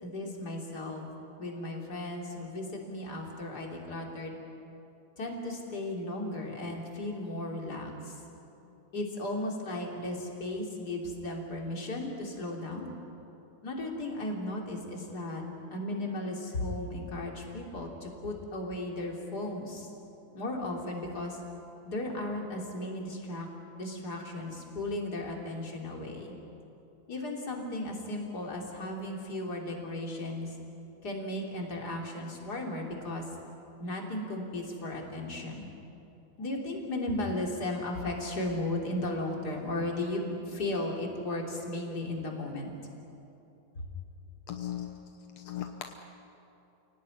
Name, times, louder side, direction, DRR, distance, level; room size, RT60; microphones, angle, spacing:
voice 1, 0.0-1.1 1.4-4.4 5.2-8.1 8.9-12.9 13.6-15.4 15.7-19.9 20.3-21.4 21.9-23.5 23.8-26.3 27.1-30.5 31.0-33.2 33.8-35.7 36.4-42.7 43.7-43.9, left 1 dB, 25° left, 0 dB, 3.5 m, -35 dB
voice 2, 44.5-45.9, left 11 dB, 70° left, 5 dB, 1.6 m, -39 dB
29.5 x 18.0 x 9.8 m, 2.8 s
omnidirectional pair, 4.3 m